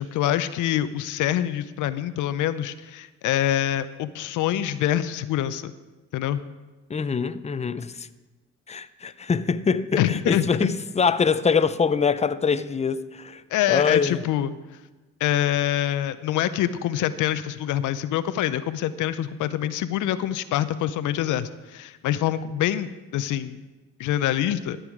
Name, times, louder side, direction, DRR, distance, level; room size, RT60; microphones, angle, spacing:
voice 1, 0.0-5.7 6.1-6.4 10.0-10.7 13.5-14.5 15.2-23.6 24.0-24.8, left 12 dB, 80° left, 0.5 m, -25 dB
voice 2, 6.9-8.1 8.7-13.4 13.7-14.2, left 5 dB, 20° left, 0.5 m, -24 dB
13.5 x 8.0 x 4.8 m
cardioid pair, 90°, 30 cm